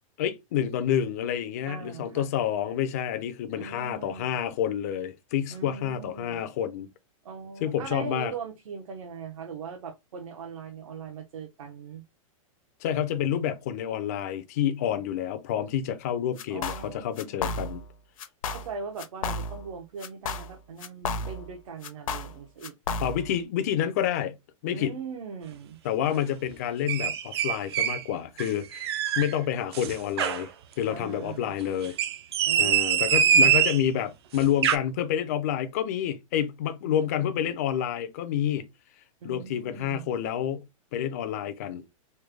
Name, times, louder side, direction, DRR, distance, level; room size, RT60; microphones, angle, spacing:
voice 1, 0.2-6.9 7.6-8.3 12.8-17.8 23.0-24.4 24.6-25.0 25.8-30.5 30.8-32.0 32.6-38.7 39.2-40.7 40.9-41.8, left 10 dB, 30° left, 0.4 m, -28 dB
voice 2, 1.7-2.3 3.5-4.3 5.5-6.4 7.2-12.0 16.5-17.7 18.5-22.8 24.6-25.8 30.9-31.6 32.4-33.6 36.8-37.3 39.2-40.1, right 6 dB, 70° right, 0.8 m, -40 dB
sound 1, 16.4-16.9 17.2-17.9 18.2-18.7 19.0-19.7 20.0-21.5 21.8-23.3, left 3 dB, 70° left, 0.7 m, -33 dB
sound 2, 26.9-28.0 28.4-29.3 29.7-30.5 31.8-33.8 34.4-34.8, right 8 dB, 50° right, 0.4 m, -23 dB
3.2 x 2.2 x 3.3 m
supercardioid pair, 175°, 18 cm